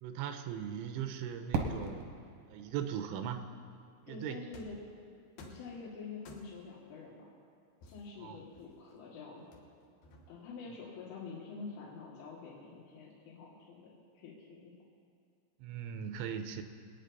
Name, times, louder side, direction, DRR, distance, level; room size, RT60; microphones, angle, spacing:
voice 1, 0.0-2.1 2.5-3.4 4.0-4.5 8.2-8.4 15.6-16.6, right 8 dB, 85° right, 7 dB, 3.2 m, -39 dB
Fireworks, 1.5-4.4, right 4 dB, 70° right, 2.2 m, -39 dB
voice 2, 4.1-4.8 5.4-7.3 7.8-9.5 10.3-14.7, left 4 dB, 80° left, -6 dB, 4.4 m, -47 dB
sound 1, 4.5-4.9 5.4-5.7 6.2-6.7 7.8-8.9 9.5-10.5, left 1 dB, 65° left, 2.7 m, -54 dB
25.5 x 9.7 x 4.1 m, 2.2 s
omnidirectional pair, 5.6 m